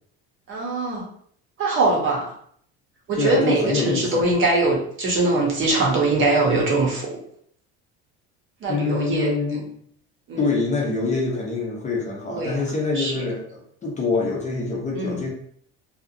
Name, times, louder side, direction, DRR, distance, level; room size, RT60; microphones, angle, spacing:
voice 1, 0.5-1.1 1.6-2.3 3.1-7.2 8.6-9.3 10.3-10.5 12.3-12.6 13.0-13.1 14.9-15.2, right 2 dB, 40° right, -2 dB, 0.8 m, -22 dB
voice 2, 3.2-4.3 8.7-9.7 10.4-15.3, left 3 dB, 25° left, -3 dB, 0.6 m, -25 dB
2.8 x 2.4 x 2.5 m, 0.64 s
cardioid pair, 130°, 30 cm